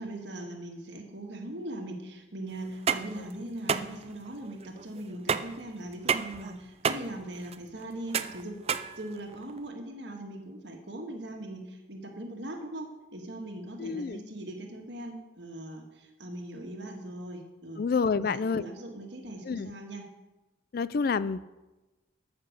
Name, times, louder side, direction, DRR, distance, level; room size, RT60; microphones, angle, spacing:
voice 1, 0.0-17.8 18.1-20.1, right 1 dB, 65° right, 3 dB, 1.8 m, -40 dB
sound 1, 2.6-9.6, right 6 dB, 30° right, 0.4 m, -32 dB
voice 2, 13.8-14.2 17.8-18.6 19.5-19.7 20.7-21.5, left 5 dB, 50° left, 17 dB, 0.3 m, -28 dB
13.0 x 6.0 x 6.6 m, 1.1 s
head